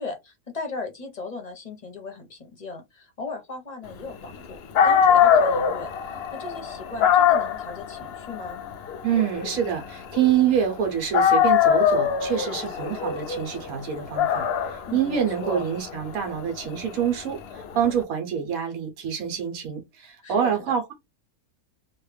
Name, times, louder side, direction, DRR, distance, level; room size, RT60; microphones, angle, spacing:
voice 1, 0.0-8.6 14.9-15.6 20.2-20.6, left 3 dB, 35° left, 0.7 m, -37 dB
Dog, 4.4-4.5 4.7-10.8 11.1-17.9, left 8 dB, 85° left, 0.5 m, -23 dB
voice 2, 9.0-20.9, right 8 dB, 65° right, 1.5 m, -26 dB
3.2 x 2.5 x 3.3 m
omnidirectional pair, 1.6 m